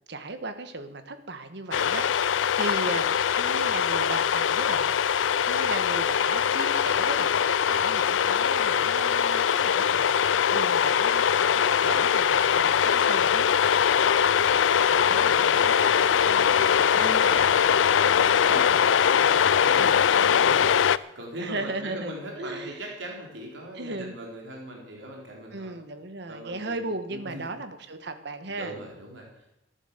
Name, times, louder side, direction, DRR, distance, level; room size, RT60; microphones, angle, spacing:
voice 1, 0.0-4.9 5.5-7.4 7.7-13.5 19.8-20.0 21.4-22.7 23.7-24.1 25.5-28.7, right 2 dB, 65° right, 9 dB, 1.5 m, -36 dB
sound 1, 1.7-21.0, left 8 dB, 90° left, 0.4 m, -22 dB
voice 2, 14.9-25.7 26.3-26.8 27.1-27.4 28.5-29.5, right 1 dB, 85° right, -1 dB, 3.8 m, -41 dB
14.0 x 11.0 x 6.7 m, 0.89 s
head